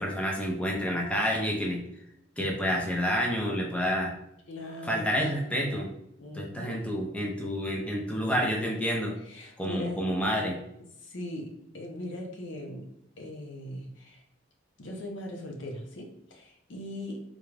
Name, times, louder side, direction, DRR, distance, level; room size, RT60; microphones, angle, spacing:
voice 1, 0.0-1.8 2.4-4.1 4.8-5.9 6.3-9.1 9.6-10.6, equal, 5° left, -1 dB, 0.6 m, -29 dB
voice 2, 4.5-5.2 6.2-6.8 9.2-10.0 11.0-12.9 13.2-14.2 14.8-17.2, left 1 dB, 80° left, 2 dB, 0.7 m, -40 dB
3.7 x 2.3 x 3.3 m, 0.77 s
head